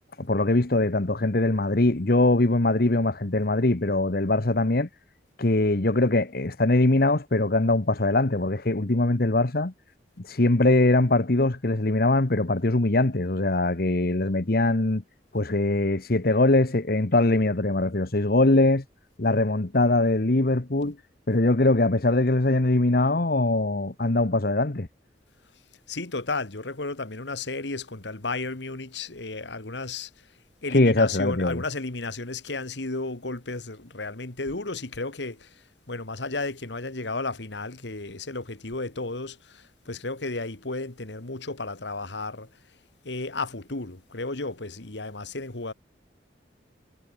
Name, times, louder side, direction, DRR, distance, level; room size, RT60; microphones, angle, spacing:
voice 1, 0.2-4.9 5.4-9.7 10.2-15.0 15.3-18.8 19.2-20.9 21.3-24.9 30.7-31.6, left 2 dB, 55° left, 1.2 m, -22 dB
voice 2, 25.9-30.1 30.6-35.5 35.9-42.5 43.0-45.7, left 3 dB, 75° left, 2.0 m, -33 dB
head